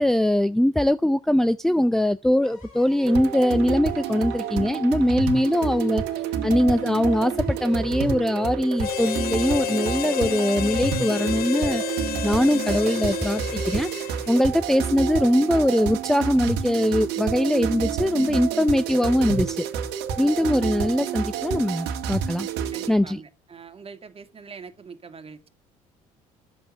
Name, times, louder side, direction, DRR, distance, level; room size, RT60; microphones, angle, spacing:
voice 1, 0.0-6.0 6.4-11.8 12.2-13.9 14.3-19.7 20.2-22.5 22.9-23.2, left 1 dB, ahead, 0.6 m, -22 dB
sound 1, 2.4-9.4, left 3 dB, 90° left, 5.3 m, -52 dB
sound 2, 3.0-22.9, right 7 dB, 70° right, 1.7 m, -29 dB
Harmonica, 8.8-14.4, left 13 dB, 60° left, 0.6 m, -31 dB
voice 2, 22.7-25.5, right 5 dB, 35° right, 2.2 m, -43 dB
11.0 x 7.8 x 10.0 m
hypercardioid pair, 65°, 18 cm